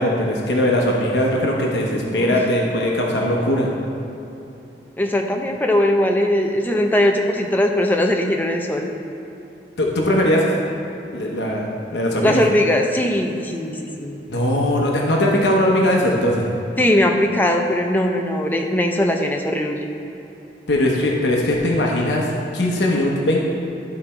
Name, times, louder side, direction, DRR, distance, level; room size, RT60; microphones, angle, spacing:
voice 1, 0.0-3.7 9.8-10.5 11.1-12.4 14.3-16.5 20.7-23.4, left 1 dB, 85° left, -2 dB, 0.9 m, -20 dB
voice 2, 2.1-2.4 5.0-8.9 12.2-14.2 16.8-19.9, left 1 dB, 10° left, 2 dB, 0.6 m, -20 dB
12.0 x 4.2 x 4.4 m, 2.9 s
head